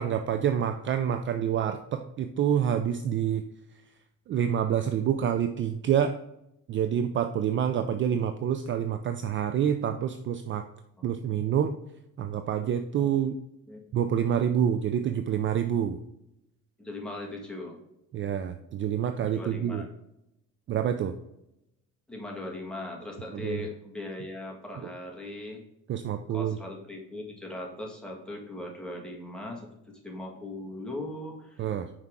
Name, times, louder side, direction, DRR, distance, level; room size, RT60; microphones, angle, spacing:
voice 1, 0.0-3.4 4.3-6.2 6.7-10.7 11.0-11.7 12.2-13.3 13.9-16.0 18.1-19.9 20.7-21.2 23.3-23.6 24.8-24.9 25.9-26.6 31.6-31.9, right 9 dB, 40° right, 8 dB, 0.4 m, -27 dB
voice 2, 16.8-17.8 19.2-19.9 22.1-25.6 26.3-31.6, left 1 dB, 5° left, -1 dB, 1.5 m, -39 dB
5.7 x 4.7 x 3.6 m, 0.86 s
cardioid pair, 120°, 31 cm